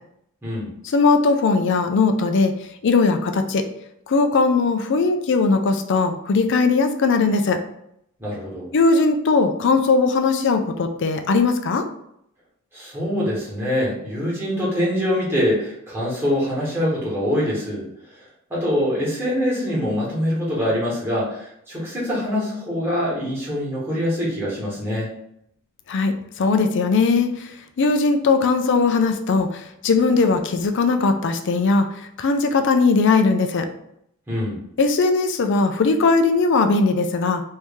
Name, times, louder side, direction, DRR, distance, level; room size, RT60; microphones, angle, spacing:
voice 1, 0.8-2.5 2.8-3.6 4.1-7.6 8.7-11.9 25.9-27.5 27.8-33.7 34.8-37.4, left 4 dB, 60° left, 7 dB, 0.4 m, -19 dB
voice 2, 8.2-8.7 12.7-17.8 18.1-18.2 18.5-25.1 34.3-34.6, equal, 10° right, -7 dB, 1.4 m, -24 dB
3.1 x 2.7 x 3.5 m, 0.75 s
head